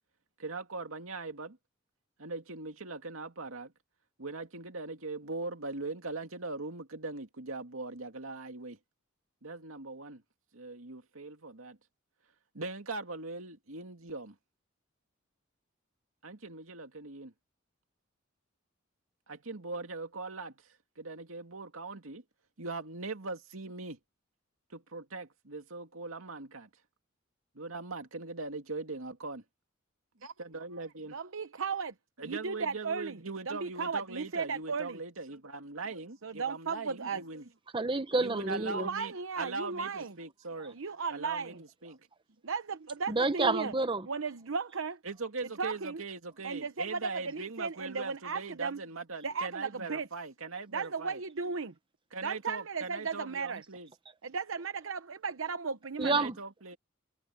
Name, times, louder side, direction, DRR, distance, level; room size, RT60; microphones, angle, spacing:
voice 1, 0.4-1.6 2.2-3.7 4.2-8.8 9.4-10.2 10.5-11.8 12.5-14.4 16.2-17.3 19.3-20.6 21.0-22.2 22.6-24.0 24.7-26.7 27.5-29.4 30.2-31.2 32.2-37.5 38.1-40.8 41.1-42.0 45.0-51.2 52.1-53.9 56.0-56.8, right 3 dB, 90° right, 2.3 m, -40 dB
voice 2, 31.1-31.9 32.2-33.2 33.5-35.0 36.2-37.2 38.7-40.1 40.7-41.6 42.4-43.7 44.1-45.0 45.6-46.0 46.4-48.8 49.2-50.1 50.7-51.7 52.2-53.6 54.2-56.2, right 5 dB, 75° right, 0.9 m, -35 dB
voice 3, 37.7-38.9 43.1-44.1 56.0-56.3, right 3 dB, 25° right, 1.0 m, -29 dB
head